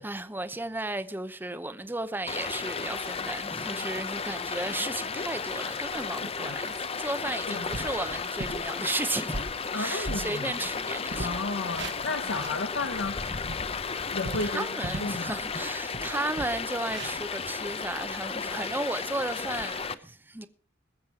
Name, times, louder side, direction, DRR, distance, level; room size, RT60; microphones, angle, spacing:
voice 1, 0.0-9.4 9.7-11.3 14.4-20.5, right 2 dB, 10° right, 0.7 m, -34 dB
Stream, 2.3-19.9, left 5 dB, 30° left, 0.7 m, -34 dB
sound 1, 5.0-5.1 5.4-6.2 6.7-6.9 7.3-7.4 7.7-8.0 8.4-8.7 9.1-10.8 11.1-12.6 13.1-15.2 15.6-15.7 15.9-18.1, right 2 dB, 60° right, 1.5 m, -39 dB
voice 2, 6.2-6.5 7.5-7.7 9.7-10.5 11.2-13.2 14.1-14.7 15.0-15.3, left 3 dB, 70° left, 1.0 m, -33 dB
21.5 x 7.4 x 4.6 m
head